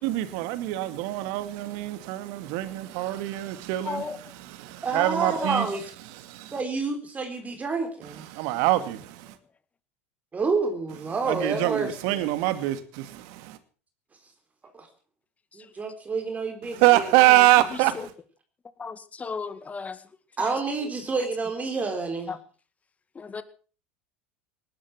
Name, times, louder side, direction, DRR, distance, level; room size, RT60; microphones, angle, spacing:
voice 1, 0.0-5.7 6.1-6.5 8.3-9.3 11.3-13.6 16.7-18.1, right 16 dB, 60° right, 2.3 m, -24 dB
voice 2, 3.9-4.2 18.8-20.0 20.5-20.6 22.3-22.4 23.2-23.4, left 5 dB, 20° left, 2.0 m, -34 dB
voice 3, 4.8-5.9 6.5-8.3 10.3-12.2 14.8-14.9 15.5-17.5 20.4-22.3, right 4 dB, 25° right, 4.0 m, -29 dB
19.0 x 12.0 x 6.1 m
hypercardioid pair, 90°, 7 cm